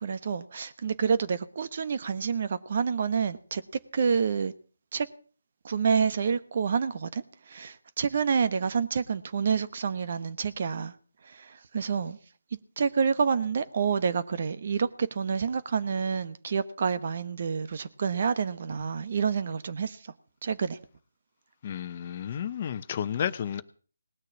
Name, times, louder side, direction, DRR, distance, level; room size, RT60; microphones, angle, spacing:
voice 1, 0.0-3.6 3.9-4.5 4.9-5.1 5.6-10.9 11.3-12.2 12.8-20.0 20.4-20.8, right 6 dB, 45° right, 1.1 m, -28 dB
voice 2, 21.6-23.6, left 9 dB, 35° left, 0.9 m, -32 dB
19.0 x 6.6 x 8.5 m
figure-of-eight pair, 150°, 0 cm